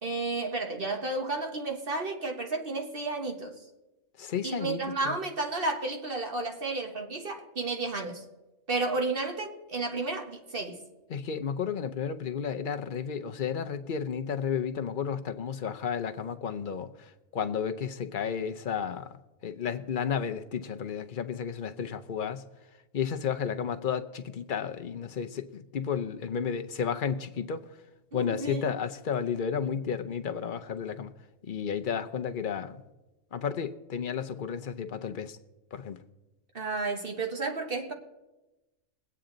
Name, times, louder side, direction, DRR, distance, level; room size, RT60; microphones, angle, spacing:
voice 1, 0.0-3.6 4.4-8.2 8.7-10.8 28.1-28.7 36.5-37.9, right 3 dB, 50° right, 1.4 m, -32 dB
voice 2, 4.2-5.2 11.1-19.2 19.4-22.4 22.9-27.7 28.1-31.1 31.5-32.8 33.3-35.4 35.7-36.0, left 7 dB, 50° left, 0.8 m, -32 dB
22.0 x 8.7 x 3.9 m
omnidirectional pair, 1.3 m